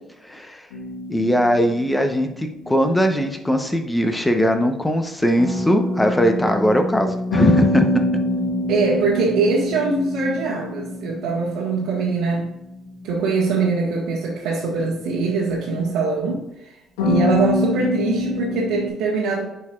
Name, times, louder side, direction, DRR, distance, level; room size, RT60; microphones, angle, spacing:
voice 1, 0.2-0.6 1.1-7.9, equal, 10° left, 6 dB, 0.9 m, -20 dB
sound 1, 0.7-3.0 7.3-12.1 17.0-18.9, left 2 dB, 90° left, 1.1 m, -25 dB
Harp, 5.4-15.0 15.2-15.3 15.5-15.8, left 1 dB, 25° right, 0.9 m, -31 dB
voice 2, 8.7-12.5 13.0-16.7 17.0-19.4, right 4 dB, 80° right, -7 dB, 1.5 m, -22 dB
9.2 x 4.7 x 2.5 m, 0.90 s
supercardioid pair, 65°, 0 cm